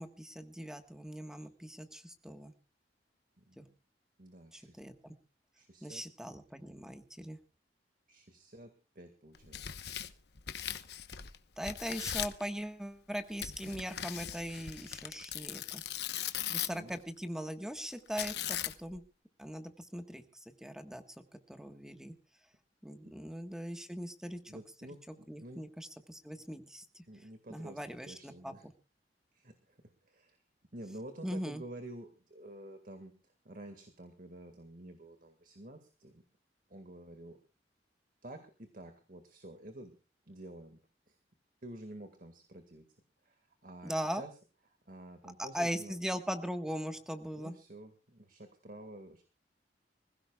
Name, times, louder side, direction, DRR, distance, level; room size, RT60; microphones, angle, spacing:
voice 1, 0.0-2.5 3.6-3.7 4.5-5.2 5.8-7.4 11.6-15.8 16.5-19.0 19.4-22.1 22.8-24.4 25.3-27.0 27.5-28.5 31.2-31.6 43.8-44.2 45.4-47.5, equal, 5° right, 7 dB, 1.4 m, -40 dB
voice 2, 3.4-3.7 4.2-4.8 5.5-6.0 8.1-9.8 16.6-17.0 23.0-23.3 24.5-25.6 27.1-28.7 29.3-30.4 30.7-36.2 36.7-37.4 38.2-40.0 40.3-40.8 41.1-41.2 41.6-42.9 43.2-44.3 44.9-46.2 47.3-49.2, right 1 dB, 50° right, 6 dB, 1.9 m, -50 dB
Tearing, 9.3-11.4 11.6-12.4 13.4-16.9 18.2-19.0, left 11 dB, 65° left, 1.0 m, -39 dB
25.5 x 16.0 x 2.4 m, 0.33 s
head